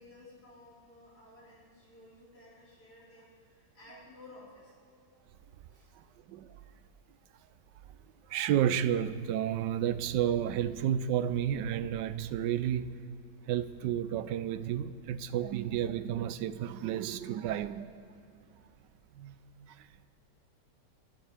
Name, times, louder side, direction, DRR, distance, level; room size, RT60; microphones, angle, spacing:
voice 1, 0.0-4.8 5.7-5.9, left 2 dB, 60° left, 5.1 m, -55 dB
voice 2, 5.9-6.6 8.3-13.0 13.5-18.1 19.2-19.9, right 10 dB, 80° right, 1.2 m, -32 dB
25.0 x 12.0 x 3.4 m
omnidirectional pair, 1.9 m